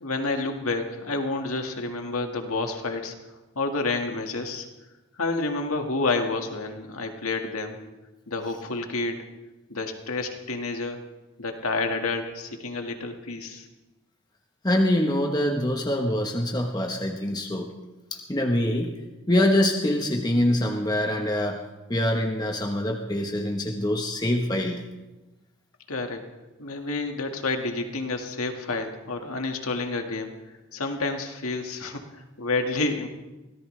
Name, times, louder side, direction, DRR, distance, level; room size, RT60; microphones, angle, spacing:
voice 1, 0.0-3.1 3.6-4.7 5.2-7.8 8.3-9.3 9.7-11.0 11.4-13.7 25.9-26.2 26.6-30.3 30.7-33.1, left 3 dB, 85° left, 4 dB, 1.9 m, -29 dB
voice 2, 14.6-17.7 18.1-19.0 19.3-21.6 21.9-24.9, left 1 dB, 20° left, 1 dB, 1.1 m, -24 dB
24.0 x 17.5 x 3.3 m, 1.1 s
head